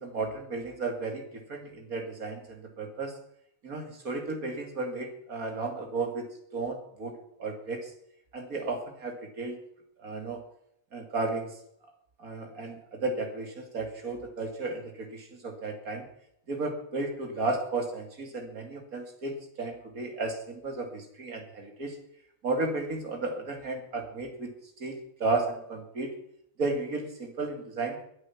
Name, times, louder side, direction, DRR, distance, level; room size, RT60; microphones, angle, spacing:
voice 1, 0.0-3.2 3.6-7.9 8.3-9.6 10.0-10.4 10.9-11.6 12.2-16.1 16.5-22.0 22.4-26.1 26.6-28.0, right 3 dB, 75° right, 4 dB, 2.8 m, -34 dB
22.0 x 8.1 x 5.8 m, 0.73 s
omnidirectional pair, 1.5 m